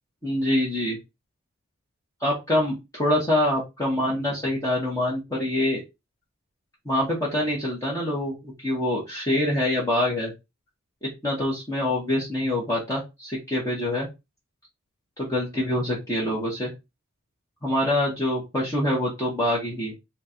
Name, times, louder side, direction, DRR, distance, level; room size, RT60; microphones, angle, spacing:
voice 1, 0.2-1.0 2.2-5.8 6.8-10.3 11.0-14.1 15.2-16.7 17.6-19.9, left 1 dB, 15° left, -6 dB, 1.4 m, -25 dB
4.3 x 2.6 x 4.4 m, 0.23 s
head